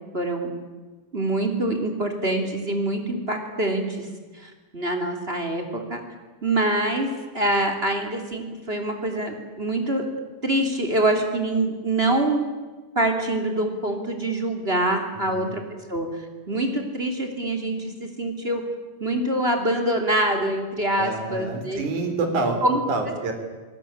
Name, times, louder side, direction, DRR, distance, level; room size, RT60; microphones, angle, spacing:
voice 1, 0.1-0.5 1.1-4.1 4.3-6.0 6.4-10.0 10.4-12.4 12.9-15.6 15.9-16.1 16.5-18.6 19.0-21.8 22.6-22.8, right 1 dB, 15° right, 4 dB, 2.4 m, -25 dB
voice 2, 15.1-15.5 21.0-22.6 22.9-23.3, right 3 dB, 45° right, 5 dB, 4.8 m, -27 dB
27.0 x 18.5 x 8.8 m, 1.3 s
omnidirectional pair, 5.4 m